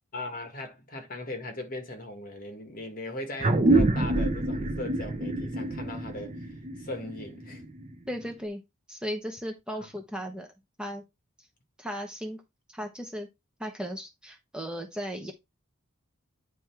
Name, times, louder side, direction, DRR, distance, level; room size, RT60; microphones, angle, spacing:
voice 1, 0.1-7.6 9.8-9.9, left 1 dB, 40° left, 1.7 m, -39 dB
sound 1, 3.4-8.3, right 2 dB, 30° right, 0.7 m, -27 dB
voice 2, 8.1-8.6 8.9-10.5 10.8-11.0 11.8-12.4 12.7-13.3 13.6-15.3, equal, 5° right, 0.9 m, -36 dB
9.2 x 3.4 x 4.6 m
head